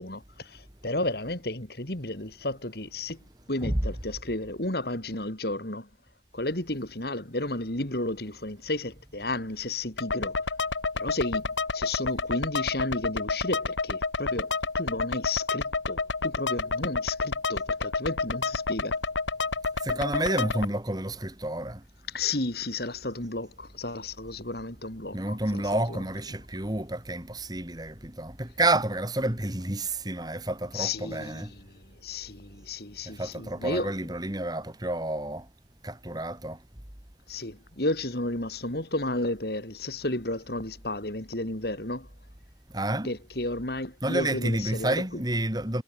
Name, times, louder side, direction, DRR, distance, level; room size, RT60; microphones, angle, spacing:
voice 1, 0.0-3.2 3.5-5.9 6.3-10.3 11.0-11.4 11.7-18.9 22.1-26.0 30.7-31.6 32.0-33.9 37.3-42.1 43.0-45.0, left 2 dB, 55° left, 3.4 m, -32 dB
sound 1, 10.0-20.6, left 4 dB, 85° left, 1.7 m, -30 dB
voice 2, 19.8-21.8 25.1-31.5 33.1-35.5 35.8-36.6 42.7-43.1 44.0-45.8, right 1 dB, 20° right, 2.7 m, -29 dB
head